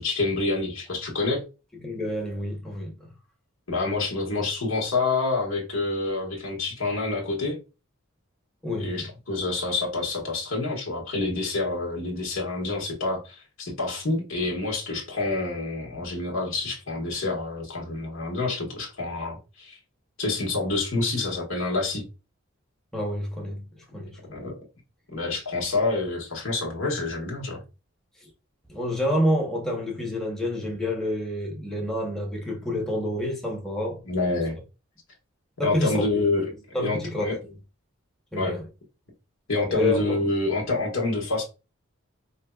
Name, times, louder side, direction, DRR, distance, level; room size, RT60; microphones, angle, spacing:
voice 1, 0.0-1.4 3.7-7.6 8.8-19.8 20.2-22.0 24.3-24.6 25.1-27.6 34.0-34.6 35.6-36.5 36.8-37.4 38.4-38.6 39.5-41.4, left 3 dB, 75° left, 1.4 m, -27 dB
voice 2, 1.8-3.0 8.6-9.1 22.9-23.7 23.9-24.5 28.7-34.0 35.6-36.1 36.7-37.3 38.3-38.6 39.7-40.2, left 1 dB, ahead, 0.9 m, -28 dB
5.0 x 2.8 x 2.3 m
head